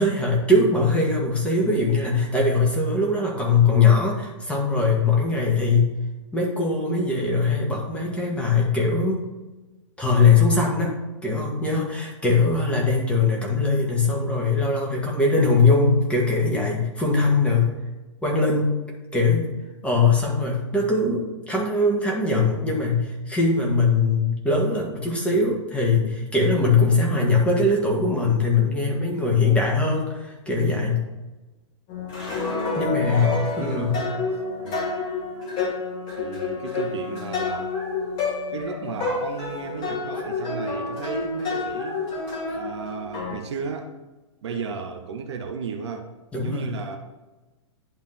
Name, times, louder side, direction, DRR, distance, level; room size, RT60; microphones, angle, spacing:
voice 1, 0.0-5.9 6.3-9.2 10.0-17.7 18.2-18.8 19.1-19.5 19.8-31.0 32.8-34.0 46.3-46.7, left 3 dB, 5° left, -2 dB, 1.7 m, -21 dB
sound 1, 31.9-43.4, left 3 dB, 30° left, 2.2 m, -29 dB
voice 2, 33.0-34.0 34.6-34.8 36.2-37.8 38.5-42.1 42.5-43.9 44.4-46.1 46.4-47.0, right 5 dB, 60° right, 4 dB, 0.9 m, -34 dB
10.5 x 3.5 x 4.1 m, 1.1 s
figure-of-eight pair, 105°, 16 cm